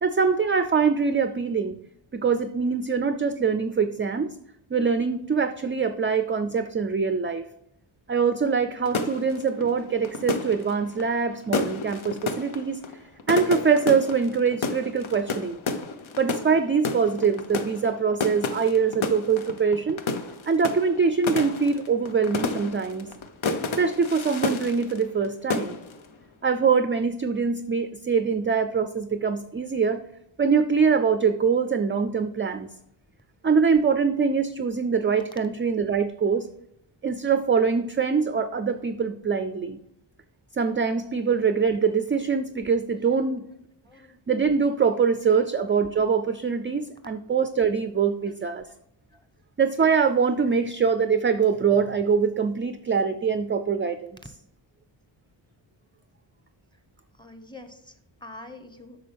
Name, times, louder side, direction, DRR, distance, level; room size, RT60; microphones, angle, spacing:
voice 1, 0.0-1.8 2.1-4.3 4.7-7.4 8.1-12.8 13.3-15.6 16.2-20.0 20.5-23.1 23.8-25.8 26.4-30.0 30.4-32.7 33.4-36.5 37.0-39.8 40.6-43.5 44.3-48.6 49.6-54.1, right 5 dB, 25° right, 10 dB, 0.4 m, -23 dB
Fireworks in foreground, 8.9-25.3 25.5-26.1, left 4 dB, 75° left, 0.9 m, -31 dB
voice 2, 43.9-44.2 48.3-48.4 48.7-48.8 49.1-49.2 57.2-59.0, left 2 dB, 10° left, 7 dB, 1.0 m, -46 dB
8.5 x 6.0 x 3.4 m, 0.78 s
wide cardioid pair, 95°, 48 cm